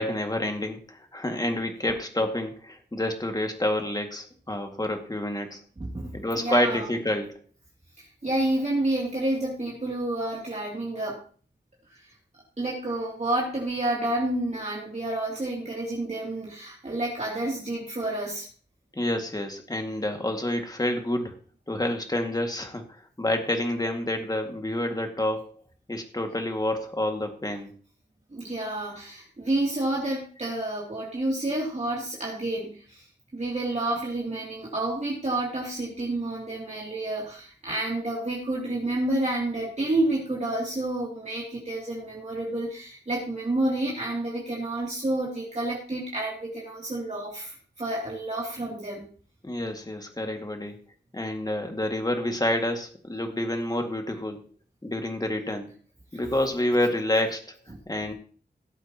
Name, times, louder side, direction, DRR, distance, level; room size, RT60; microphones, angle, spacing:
voice 1, 0.0-5.6 6.1-7.4 18.9-21.4 21.7-25.5 25.9-27.7 49.4-50.8 51.1-54.4 54.8-55.7 56.1-57.6 57.9-58.1, left 1 dB, 20° left, 4 dB, 2.0 m, -28 dB
voice 2, 5.8-6.9 8.0-11.2 11.9-12.1 12.6-18.5 28.3-33.1 33.3-49.0, right 1 dB, 40° right, -4 dB, 2.8 m, -29 dB
18.0 x 8.0 x 2.9 m, 0.42 s
wide cardioid pair, 80°, 18 cm